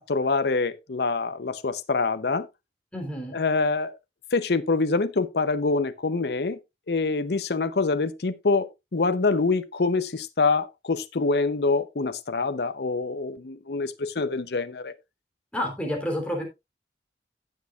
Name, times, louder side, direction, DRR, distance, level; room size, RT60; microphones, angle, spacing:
voice 1, 0.1-2.5 3.3-3.9 4.3-6.6 6.9-14.9, left 3 dB, 65° left, 0.7 m, -25 dB
voice 2, 2.9-3.4 15.5-16.4, equal, 5° left, 3.4 m, -29 dB
16.5 x 6.4 x 2.4 m
head